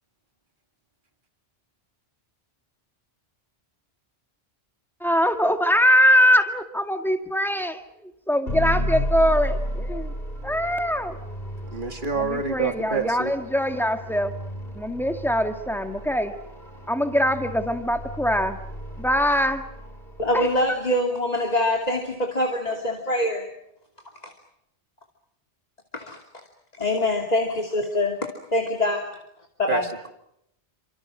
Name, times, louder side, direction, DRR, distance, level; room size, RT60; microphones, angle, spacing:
voice 1, 5.0-10.1 10.4-11.2 12.2-14.3 14.7-16.3 16.9-18.6 19.0-19.6 20.3-20.5, equal, ahead, 5 dB, 2.1 m, -22 dB
sound 1, 8.5-20.6, equal, 55° left, 4.4 m, -33 dB
voice 2, 11.7-13.3 29.7-29.8, right 5 dB, 45° right, 5 dB, 2.6 m, -27 dB
voice 3, 20.2-23.5 25.9-26.2 26.8-28.2 28.5-29.1 29.6-29.8, left 1 dB, 35° left, 2 dB, 2.9 m, -24 dB
29.0 x 26.0 x 6.4 m, 0.78 s
omnidirectional pair, 1.2 m